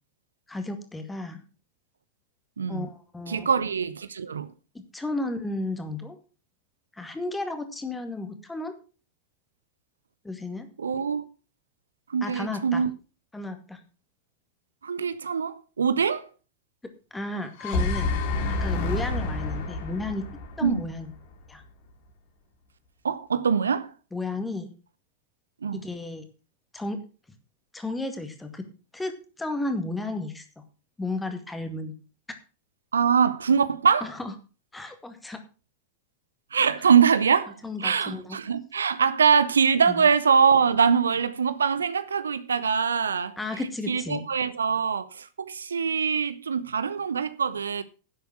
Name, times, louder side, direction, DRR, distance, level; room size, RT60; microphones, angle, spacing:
voice 1, 0.5-1.4 2.7-3.5 4.9-6.2 6.9-8.7 10.2-10.7 12.2-12.8 13.3-13.8 17.1-18.2 18.6-20.2 20.6-21.1 21.5-21.6 24.1-24.7 25.7-26.3 26.7-27.0 27.7-28.6 28.9-30.4 31.0-31.9 34.0-34.3 34.7-35.4 37.6-38.4 39.9-40.0 43.4-44.3, left 2 dB, 10° left, 2.1 m, -33 dB
voice 2, 3.3-4.5 10.8-11.2 12.1-12.9 14.8-16.3 20.6-20.8 23.0-23.9 25.6-25.8 32.9-34.1 36.5-43.4 43.9-47.8, right 6 dB, 70° right, 0.7 m, -23 dB
sound 1, 17.4-21.5, left 3 dB, 50° left, 2.5 m, -29 dB
11.0 x 7.9 x 6.1 m
figure-of-eight pair, 90°, 0 cm